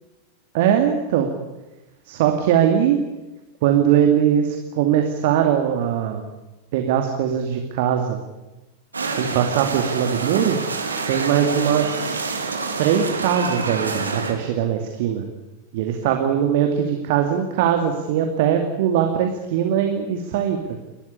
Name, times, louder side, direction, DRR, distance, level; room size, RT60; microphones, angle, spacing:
voice 1, 0.5-1.3 2.1-3.0 3.6-6.2 6.7-8.2 9.2-10.6 11.1-12.4 12.8-15.2 15.7-20.8, right 9 dB, 50° right, 4 dB, 2.5 m, -21 dB
sound 1, 8.9-14.3, right 4 dB, 75° right, 3.3 m, -27 dB
30.0 x 13.5 x 9.9 m, 1.1 s
figure-of-eight pair, 90°, 0 cm